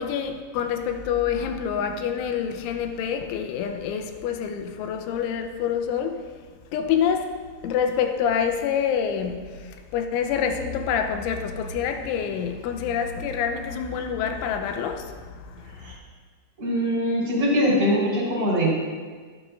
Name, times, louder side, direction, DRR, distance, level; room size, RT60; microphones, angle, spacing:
voice 1, 0.0-6.3 6.7-16.0, left 7 dB, 85° left, 3.2 m, -27 dB
voice 2, 16.6-18.7, equal, 20° right, 4.1 m, -22 dB
22.5 x 9.5 x 2.6 m
omnidirectional pair, 5.5 m